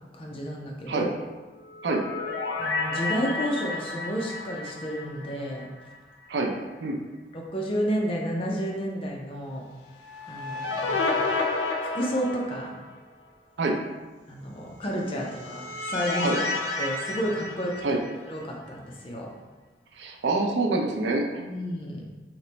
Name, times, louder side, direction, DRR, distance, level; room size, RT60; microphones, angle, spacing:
voice 1, 0.1-1.1 2.6-5.7 7.3-9.6 10.3-11.3 11.9-12.8 14.3-16.3 16.8-18.0 18.3-19.3 21.4-22.0, equal, 30° left, -2 dB, 0.5 m, -31 dB
sound 1, 1.6-5.9 6.2-6.3 9.8-13.0 15.0-18.4, left 3 dB, 85° left, 0.5 m, -31 dB
voice 2, 20.0-21.2, right 3 dB, 90° right, 1 dB, 0.5 m, -26 dB
2.9 x 2.2 x 3.9 m, 1.3 s
head